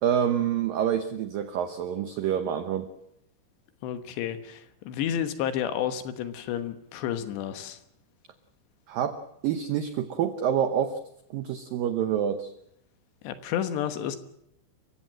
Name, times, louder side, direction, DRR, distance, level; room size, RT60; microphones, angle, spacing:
voice 1, 0.0-2.9 8.9-9.2 9.4-11.0 11.3-12.5, right 9 dB, 90° right, 9 dB, 1.9 m, -27 dB
voice 2, 3.8-7.8 13.2-14.2, left 10 dB, 70° left, 10 dB, 3.2 m, -31 dB
29.5 x 15.5 x 7.6 m, 0.78 s
omnidirectional pair, 5.5 m